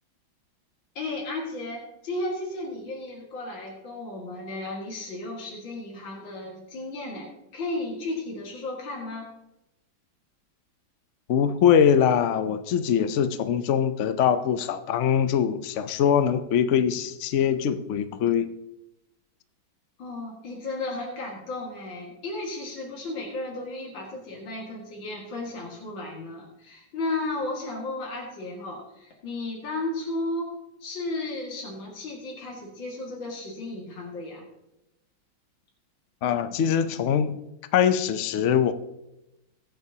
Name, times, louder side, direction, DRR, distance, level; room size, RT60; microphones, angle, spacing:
voice 1, 0.9-9.3 20.0-30.5 30.8-34.4, left 2 dB, 70° left, -2 dB, 2.8 m, -34 dB
voice 2, 11.3-18.5 36.2-37.4 37.7-38.7, left 8 dB, 85° left, 10 dB, 0.6 m, -22 dB
22.5 x 7.8 x 2.8 m, 0.89 s
omnidirectional pair, 2.2 m